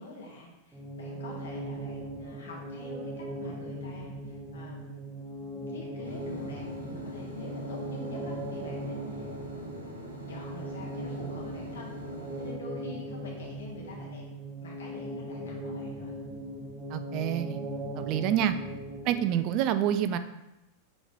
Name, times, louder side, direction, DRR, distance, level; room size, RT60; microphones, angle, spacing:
voice 1, 0.0-5.2 5.7-9.3 10.3-11.9 12.4-14.2 14.6-16.1, left 2 dB, 65° left, -3 dB, 1.7 m, -46 dB
sound 1, 0.7-19.5, right 1 dB, 5° right, 1.4 m, -39 dB
sound 2, 6.0-12.5, equal, 80° right, 1.0 m, -44 dB
voice 2, 16.9-17.6 18.0-18.6 19.0-20.2, right 10 dB, 40° right, 11 dB, 0.4 m, -27 dB
7.0 x 3.8 x 3.5 m, 0.95 s
figure-of-eight pair, 90°, 0 cm